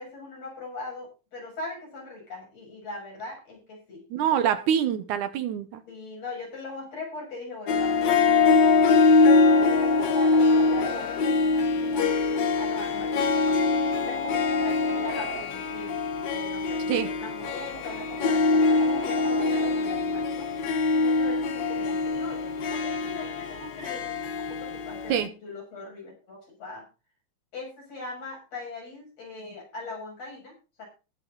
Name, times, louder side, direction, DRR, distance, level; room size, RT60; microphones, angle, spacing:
voice 1, 0.0-4.6 5.9-16.0 16.3-20.5 20.9-24.1 24.5-26.9 27.5-30.9, left 3 dB, 55° left, 7.5 m, -40 dB
voice 2, 4.1-5.8 16.9-17.1 25.1-25.3, right 9 dB, 80° right, 2.5 m, -25 dB
Harp, 7.7-25.3, left 4 dB, 75° left, 1.0 m, -23 dB
sound 1, 8.2-8.4 8.8-11.1 12.7-15.5 17.0-19.8 22.1-22.2, right 5 dB, 40° right, 2.7 m, -40 dB
19.5 x 6.9 x 4.0 m
omnidirectional pair, 3.5 m